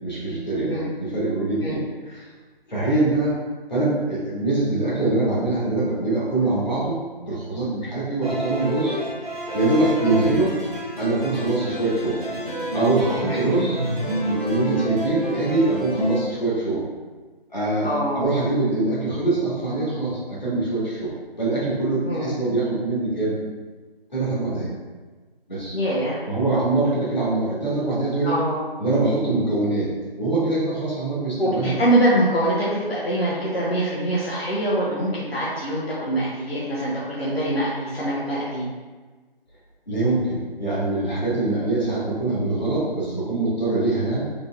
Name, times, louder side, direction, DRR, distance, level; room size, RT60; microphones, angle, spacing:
voice 1, 0.0-2.3 2.7-3.4 3.7-9.0 9.5-10.5 11.0-12.2 12.7-13.8 14.2-16.8 17.5-21.1 21.4-23.4 24.1-24.7 25.5-25.7 26.3-28.3 28.8-29.9 30.2-31.8 39.9-44.2, right 2 dB, 45° left, -8 dB, 1.5 m, -23 dB
sound 1, 8.2-16.2, right 1 dB, 40° right, 0.9 m, -28 dB
voice 2, 17.8-18.2 22.0-22.3 25.7-26.2 28.2-28.6 31.4-38.7, right 1 dB, 75° left, -7 dB, 1.0 m, -24 dB
3.9 x 3.5 x 2.3 m, 1.4 s
figure-of-eight pair, 175°, 30 cm